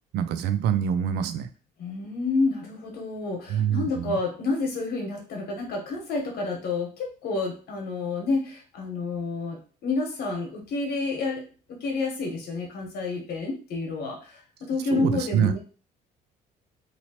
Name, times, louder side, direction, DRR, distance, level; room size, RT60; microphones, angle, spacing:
voice 1, 0.1-1.5 3.5-4.2 14.9-15.6, right 9 dB, 80° right, 10 dB, 0.4 m, -25 dB
voice 2, 1.8-15.6, left 3 dB, 70° left, 1 dB, 1.3 m, -29 dB
2.9 x 2.8 x 2.9 m, 0.37 s
cardioid pair, 110°, 17 cm